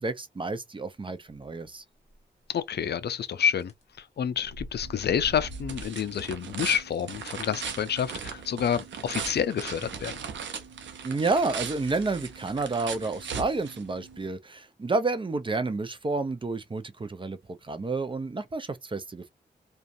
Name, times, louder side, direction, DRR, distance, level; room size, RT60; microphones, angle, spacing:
voice 1, 0.0-1.8 11.0-19.3, right 3 dB, 25° right, 0.5 m, -30 dB
sound 1, 2.1-2.2 3.6-3.8 4.3-5.9, equal, 35° left, 1.2 m, -41 dB
voice 2, 2.5-3.7 4.0-10.1, left 8 dB, 65° left, 0.4 m, -28 dB
sound 2, 4.8-14.3, right 6 dB, 80° right, 0.6 m, -39 dB
2.5 x 2.2 x 2.5 m
cardioid pair, 50°, 19 cm